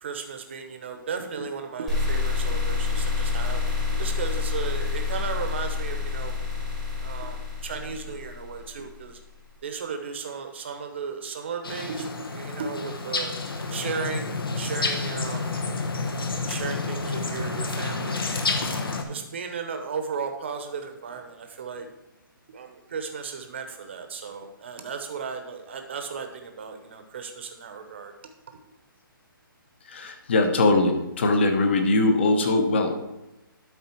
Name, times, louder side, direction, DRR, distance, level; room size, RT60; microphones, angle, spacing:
voice 1, 0.0-6.3 7.0-9.2 9.6-13.3 13.7-15.6 16.5-18.7 19.1-21.9 22.5-28.1, right 5 dB, 30° right, 6 dB, 0.8 m, -35 dB
sound 1, 1.9-9.0, left 4 dB, ahead, 1.0 m, -28 dB
sound 2, 11.6-19.0, left 3 dB, 80° left, 1.2 m, -29 dB
voice 2, 29.9-32.9, left 2 dB, 30° left, 6 dB, 0.8 m, -21 dB
12.0 x 4.0 x 4.4 m, 0.97 s
hypercardioid pair, 175°, 12 cm